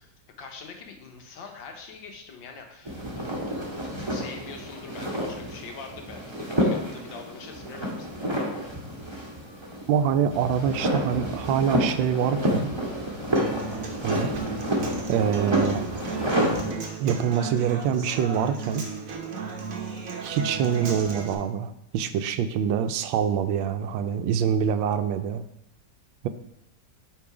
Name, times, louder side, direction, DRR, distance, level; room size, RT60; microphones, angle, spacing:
voice 1, 0.0-3.2 3.9-8.7, left 5 dB, 75° left, 4 dB, 1.6 m, -44 dB
sound 1, 2.8-16.7, equal, 15° right, 1.3 m, -29 dB
voice 2, 9.9-12.7 14.0-14.3 15.1-15.9 17.0-18.9 20.2-25.4, right 8 dB, 80° right, 10 dB, 1.3 m, -25 dB
Human voice / Acoustic guitar, 13.4-21.3, right 5 dB, 50° right, 1.2 m, -35 dB
8.6 x 3.7 x 4.7 m, 0.81 s
omnidirectional pair, 2.1 m